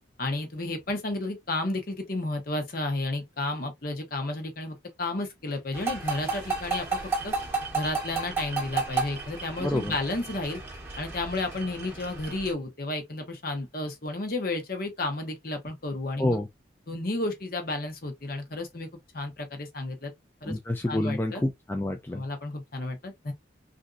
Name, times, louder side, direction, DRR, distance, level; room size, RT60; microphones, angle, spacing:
voice 1, 0.2-7.0 7.2-7.3 7.7-10.6 11.0-16.4 16.9-18.9 19.1-20.1 20.4-20.5 20.9-21.4 22.1-23.3, left 2 dB, 50° left, 1.0 m, -32 dB
sound 1, 5.7-12.5, right 4 dB, 15° right, 0.9 m, -33 dB
voice 2, 9.6-10.0 16.2-16.5 20.4-22.2, left 1 dB, 10° left, 0.3 m, -28 dB
3.5 x 2.6 x 2.4 m
head